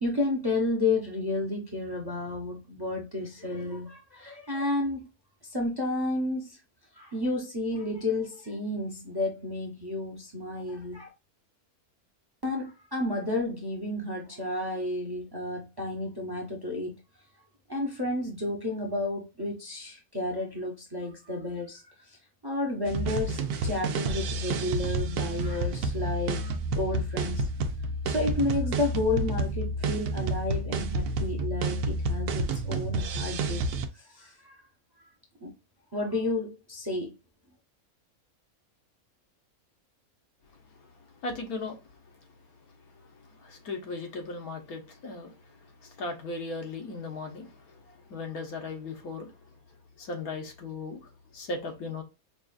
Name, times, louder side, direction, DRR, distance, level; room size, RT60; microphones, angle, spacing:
voice 1, 0.0-5.0 5.4-6.6 6.9-11.1 12.4-17.0 17.7-21.8 22.1-22.2 22.4-27.5 28.0-33.6 33.9-34.6 35.4-35.5 35.9-37.1, left 2 dB, 20° right, 0.7 m, -31 dB
sound 1, 22.8-33.9, right 2 dB, 90° right, 1.1 m, -30 dB
voice 2, 41.2-41.8 43.0-43.1 43.4-45.3 45.8-49.3 50.0-52.0, left 3 dB, 80° left, 1.5 m, -37 dB
5.3 x 2.4 x 2.3 m
omnidirectional pair, 1.6 m